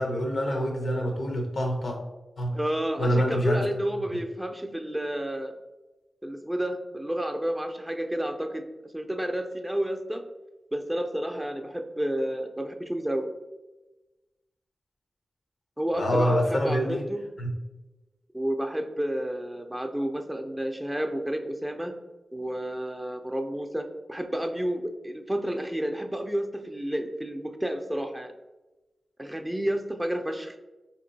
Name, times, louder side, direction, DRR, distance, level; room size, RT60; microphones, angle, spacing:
voice 1, 0.0-2.0 2.4-2.5 3.0-3.7 15.9-17.0 17.4-17.5, equal, 80° left, 2 dB, 0.7 m, -26 dB
voice 2, 2.5-5.5 6.2-8.6 8.9-10.2 10.7-13.3 15.8-17.2 18.3-21.9 22.3-28.3 29.2-30.5, right 1 dB, 15° right, 6 dB, 0.3 m, -30 dB
3.6 x 2.9 x 2.6 m, 1.1 s
cardioid pair, 55°, 0 cm